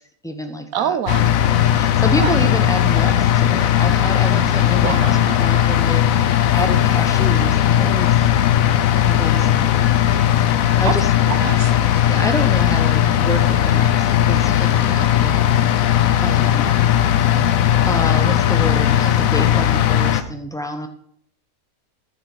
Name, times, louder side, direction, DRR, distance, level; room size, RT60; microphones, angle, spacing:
voice 1, 0.0-1.0 1.6-8.2 9.0-9.7 10.8-11.1 12.1-15.5 16.2-16.7 17.9-20.9, equal, 5° left, 6 dB, 0.8 m, -28 dB
voice 2, 0.7-1.4 2.2-2.3 4.7-5.6 10.8-10.9 11.3-11.9, right 9 dB, 85° right, 11 dB, 1.3 m, -26 dB
sound 1, 1.1-20.2, left 11 dB, 80° left, 1.1 m, -17 dB
9.9 x 5.6 x 6.2 m, 0.65 s
omnidirectional pair, 1.4 m